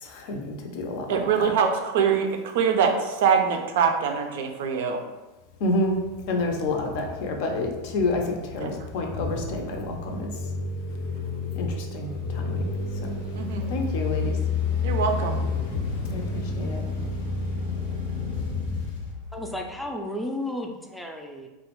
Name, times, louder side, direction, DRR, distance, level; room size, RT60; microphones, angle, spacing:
voice 1, 0.0-1.5 5.6-5.9 6.3-10.3 11.5-12.7 13.0-13.2 13.7-14.4 16.1-16.9, left 2 dB, 65° left, 2 dB, 0.5 m, -29 dB
voice 2, 1.1-5.0 8.6-8.7 13.4-13.8 14.8-15.4, right 6 dB, 75° right, 4 dB, 0.3 m, -24 dB
sound 1, 5.5-19.9, left 4 dB, 90° left, 0.8 m, -31 dB
voice 3, 19.3-21.5, left 1 dB, ahead, 2 dB, 0.3 m, -33 dB
2.3 x 2.1 x 2.9 m, 1.1 s
supercardioid pair, 120°, 0 cm